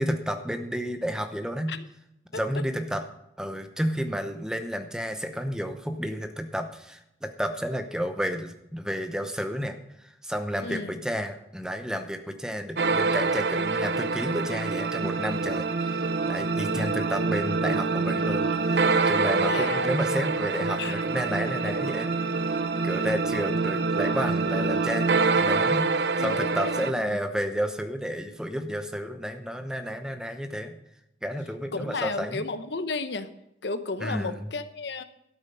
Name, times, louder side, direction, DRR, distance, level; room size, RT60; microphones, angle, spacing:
voice 1, 0.0-1.7 2.3-3.0 3.4-22.1 22.8-25.1 25.4-25.9 26.2-30.8 31.2-32.5 34.0-34.5, equal, 5° right, 7 dB, 0.8 m, -31 dB
voice 2, 10.6-10.9 19.3-19.9 20.8-21.0 21.6-21.7 26.2-27.2 31.7-33.3 33.6-35.0, left 3 dB, 70° left, 10 dB, 0.8 m, -33 dB
sound 1, 12.8-26.9, right 4 dB, 60° right, 0.6 m, -26 dB
12.5 x 8.8 x 5.6 m, 0.82 s
head